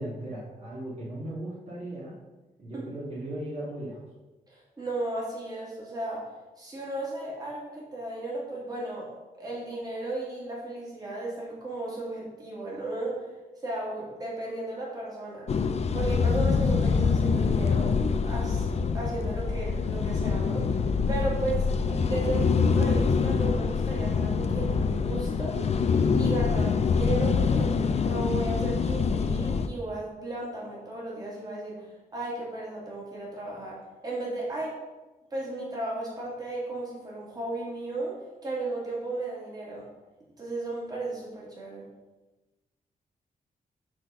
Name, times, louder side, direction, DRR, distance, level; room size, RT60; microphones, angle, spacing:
voice 1, 0.0-2.2 2.6-4.0, right 1 dB, 45° right, -7 dB, 2.3 m, -37 dB
voice 2, 4.5-6.3 6.6-9.1 9.4-13.3 13.6-15.5 15.9-20.8 21.1-25.7 26.2-34.8 35.3-39.9 40.4-41.8, right 2 dB, 25° right, -5 dB, 2.8 m, -35 dB
sound 1, 15.5-29.7, left 5 dB, 45° left, 0.5 m, -25 dB
6.4 x 4.3 x 6.6 m, 1.1 s
wide cardioid pair, 125°, 15 cm